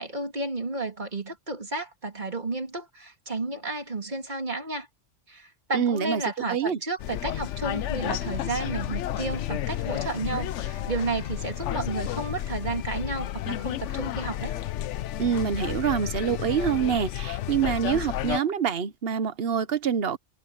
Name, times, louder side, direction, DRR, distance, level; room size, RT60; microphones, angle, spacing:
voice 1, 0.0-4.9 5.3-14.5, right 3 dB, 40° right, 2.7 m, -32 dB
voice 2, 5.7-6.2 6.5-6.8 15.2-20.2, right 7 dB, 55° right, 1.1 m, -26 dB
sound 1, 7.0-18.4, left 12 dB, 80° left, 0.9 m, -31 dB
omnidirectional pair, 1.2 m